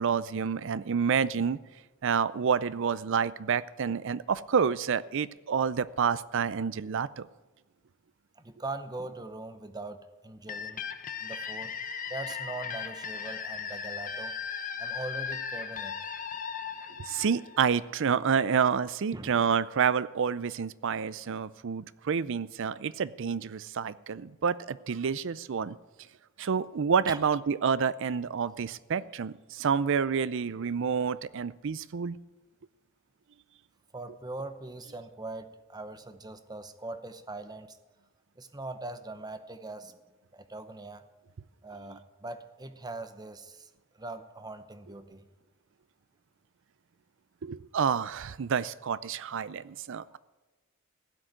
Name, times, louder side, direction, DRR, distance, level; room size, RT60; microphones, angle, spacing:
voice 1, 0.0-1.6 2.0-7.3 17.0-25.8 26.4-32.2 47.4-50.2, right 6 dB, 65° right, 17 dB, 0.5 m, -28 dB
voice 2, 8.4-10.8 11.2-11.8 12.1-14.3 14.8-16.0 19.1-19.6 27.1-27.2 33.9-37.8 38.4-40.0 40.3-41.0 41.6-45.2 50.1-50.2, right 2 dB, 20° right, 10 dB, 0.8 m, -41 dB
sound 1, 10.5-18.1, left 6 dB, 40° left, 0.9 m, -37 dB
16.0 x 6.3 x 9.3 m, 1.2 s
head